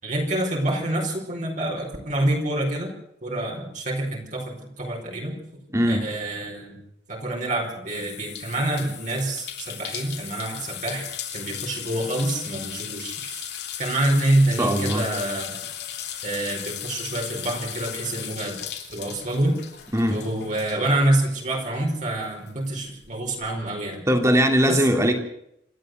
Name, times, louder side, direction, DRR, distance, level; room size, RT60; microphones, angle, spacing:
voice 1, 0.0-2.9 3.2-5.3 5.9-6.8 7.1-11.1 11.3-13.5 13.8-15.6 16.2-18.6 18.9-19.6 20.1-24.1 24.7-24.8, right 1 dB, 45° right, 0 dB, 4.9 m, -26 dB
sound 1, 7.9-21.9 22.2-23.5, left 10 dB, 65° left, 3.6 m, -36 dB
voice 2, 14.6-15.1 19.9-20.2 24.1-25.1, equal, 15° right, 4 dB, 2.9 m, -20 dB
27.0 x 12.5 x 8.0 m, 0.76 s
head